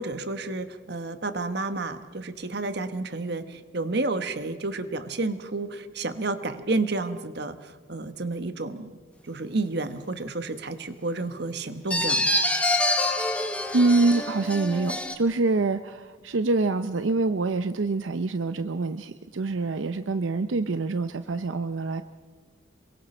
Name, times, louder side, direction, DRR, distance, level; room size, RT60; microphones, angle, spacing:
voice 1, 0.0-8.9 9.3-12.4, right 2 dB, 60° right, 10 dB, 1.2 m, -31 dB
sound 1, 11.9-15.1, left 1 dB, 5° left, 1.3 m, -26 dB
voice 2, 13.7-22.0, right 3 dB, 85° right, 10 dB, 0.6 m, -25 dB
27.0 x 23.0 x 4.4 m, 1.4 s
head